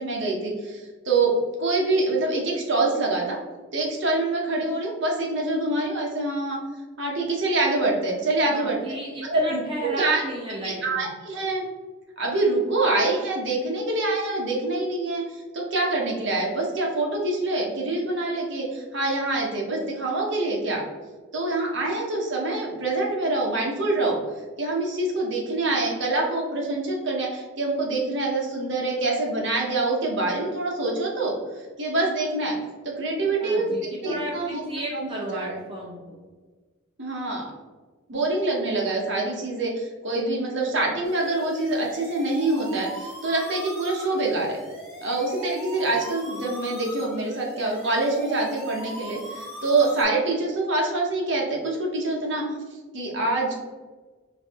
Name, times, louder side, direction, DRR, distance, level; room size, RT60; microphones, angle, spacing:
voice 1, 0.0-1.3 1.6-3.4 3.7-6.6 7.0-8.8 9.2-10.2 10.6-11.6 12.2-20.8 21.3-24.2 24.6-31.3 31.8-32.6 32.8-33.8 34.0-34.6 34.9-35.6 37.0-37.5 38.1-44.6 45.0-52.4 52.9-53.5, right 2 dB, 60° right, -2 dB, 1.0 m, -25 dB
voice 2, 8.4-11.1 33.4-36.2, right 1 dB, 25° right, -4 dB, 0.9 m, -34 dB
sound 1, 41.0-50.0, equal, ahead, 1.1 m, -40 dB
4.6 x 2.7 x 3.6 m, 1.3 s
head